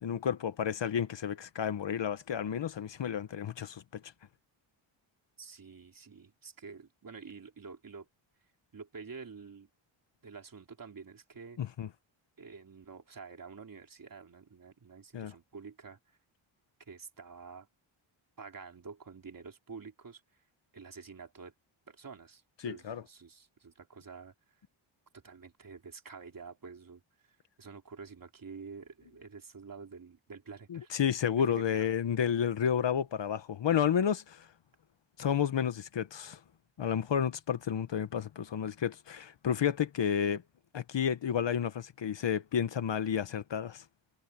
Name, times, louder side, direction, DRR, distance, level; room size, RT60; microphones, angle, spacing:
voice 1, 0.0-3.8 11.6-11.9 15.1-15.3 22.6-23.0 30.7-34.5 35.2-36.4 36.8-40.4 40.7-43.8, left 8 dB, 60° left, 1.2 m, -31 dB
voice 2, 5.4-8.1 8.7-9.7 10.2-11.6 12.4-16.0 16.9-17.7 18.4-20.2 20.7-21.5 21.9-24.3 25.1-27.0 27.6-30.9 31.5-31.9, right 5 dB, 40° right, 3.5 m, -48 dB
wide cardioid pair, 135°, 50 cm